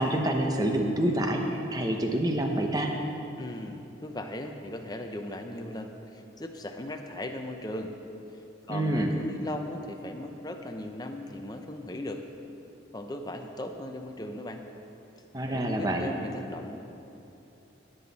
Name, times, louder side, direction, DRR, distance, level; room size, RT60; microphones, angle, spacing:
voice 1, 0.0-2.9 8.7-9.1 15.3-16.1, right 1 dB, 20° right, 3 dB, 0.9 m, -27 dB
voice 2, 3.4-7.9 8.7-12.2 12.9-14.6 15.5-16.8, left 1 dB, 20° left, 5 dB, 0.7 m, -38 dB
19.0 x 8.0 x 4.1 m, 2.8 s
head